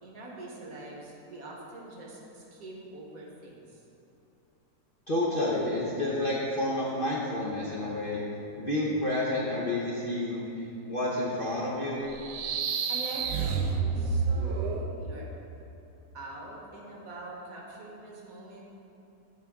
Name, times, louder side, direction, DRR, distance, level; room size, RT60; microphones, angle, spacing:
voice 1, 0.0-3.8 12.9-13.6 13.9-15.3 16.1-18.6, right 2 dB, 55° right, -3 dB, 1.6 m, -43 dB
voice 2, 5.1-8.2 8.6-12.0, left 1 dB, 40° left, -6 dB, 0.8 m, -30 dB
sound 1, 12.1-14.9, right 5 dB, 80° right, 1.3 m, -29 dB
14.0 x 4.7 x 3.6 m, 2.8 s
omnidirectional pair, 1.9 m